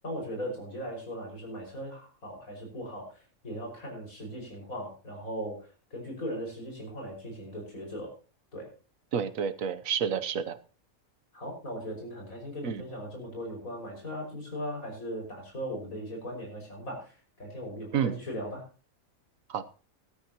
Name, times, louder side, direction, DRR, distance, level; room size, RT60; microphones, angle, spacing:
voice 1, 0.0-8.1 8.5-8.7 11.3-18.7, equal, 80° left, 1 dB, 6.2 m, -38 dB
voice 2, 9.1-10.6 12.6-12.8 17.9-18.2 19.5-19.7, right 7 dB, 75° right, 12 dB, 1.3 m, -29 dB
16.5 x 13.0 x 2.9 m, 0.37 s
omnidirectional pair, 1.4 m